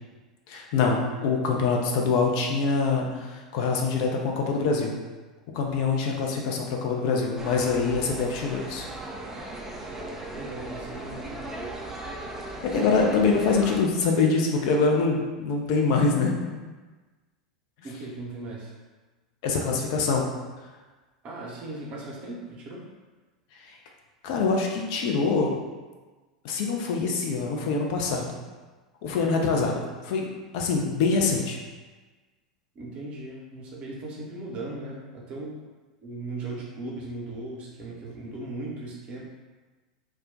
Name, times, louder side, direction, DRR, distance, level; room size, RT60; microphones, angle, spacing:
voice 1, 0.5-4.9 5.5-8.9 12.6-16.6 19.4-20.2 23.7-23.8 24.2-25.5 26.4-28.4 29.0-31.6, left 4 dB, 50° left, 1 dB, 0.5 m, -24 dB
sound 1, 7.4-13.8, right 2 dB, 10° right, 0.4 m, -37 dB
voice 2, 10.3-11.3 17.8-18.7 21.2-22.8 32.7-35.6 36.0-39.2, right 2 dB, 35° right, -3 dB, 0.7 m, -37 dB
2.3 x 2.1 x 3.7 m, 1.3 s
figure-of-eight pair, 85°, 4 cm